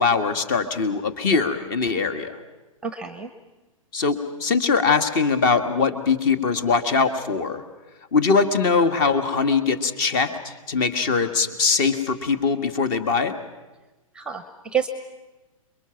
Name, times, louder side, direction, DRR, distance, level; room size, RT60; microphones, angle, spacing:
voice 1, 0.0-2.3 3.9-7.6 8.1-13.3, left 4 dB, 35° left, 10 dB, 1.7 m, -22 dB
voice 2, 2.8-3.3 14.1-14.9, right 7 dB, 5° right, 11 dB, 0.9 m, -28 dB
28.0 x 22.5 x 6.0 m, 1.2 s
figure-of-eight pair, 115°, 18 cm